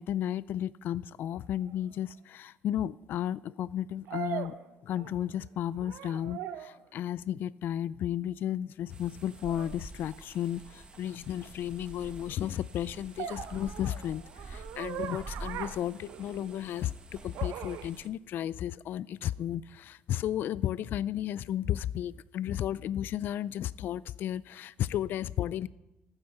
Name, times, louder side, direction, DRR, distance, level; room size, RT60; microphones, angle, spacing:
voice 1, 0.0-4.5 4.8-25.7, left 11 dB, 60° left, 19 dB, 0.4 m, -33 dB
sound 1, 1.7-1.8 4.1-5.4 5.7-6.8 9.5-9.7 13.2-16.7 17.3-17.9, right 10 dB, 85° right, 1.0 m, -40 dB
sound 2, 8.9-18.1, right 3 dB, 25° right, 1.4 m, -48 dB
15.0 x 9.9 x 7.0 m, 0.95 s
cardioid pair, 135°, 4 cm